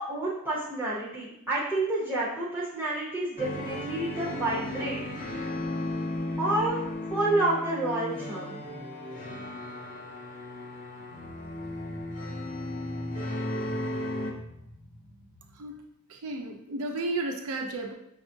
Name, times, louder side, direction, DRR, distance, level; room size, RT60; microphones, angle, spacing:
voice 1, 0.0-5.6 6.4-6.8 7.1-8.7, right 2 dB, 10° right, -7 dB, 0.6 m, -29 dB
sound 1, 3.4-14.3, left 1 dB, 40° left, 0.6 m, -35 dB
sound 2, 10.9-15.7, right 1 dB, 85° left, 0.7 m, -41 dB
voice 2, 16.1-17.9, right 2 dB, 75° right, 3 dB, 0.5 m, -33 dB
5.8 x 2.4 x 2.6 m, 0.80 s
head